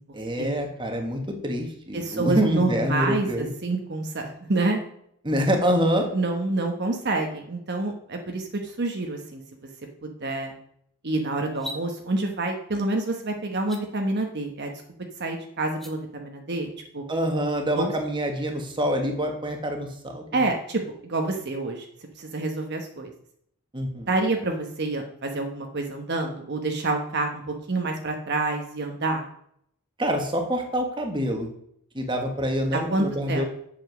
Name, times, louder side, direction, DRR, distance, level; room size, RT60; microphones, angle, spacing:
voice 1, 0.1-3.5 5.2-6.1 17.1-20.2 23.7-24.1 30.0-31.5 31.9-33.4, equal, 20° right, 3 dB, 1.5 m, -26 dB
voice 2, 1.9-4.8 6.1-9.4 10.0-10.5 11.0-14.7 15.2-17.0 17.7-17.9 20.3-21.9 22.2-23.1 24.1-29.2 32.7-33.4, right 2 dB, 50° right, 3 dB, 1.1 m, -28 dB
sound 1, 11.5-11.8 13.6-13.8 15.6-15.9, equal, ahead, 0.9 m, -37 dB
8.2 x 7.1 x 6.0 m, 0.69 s
head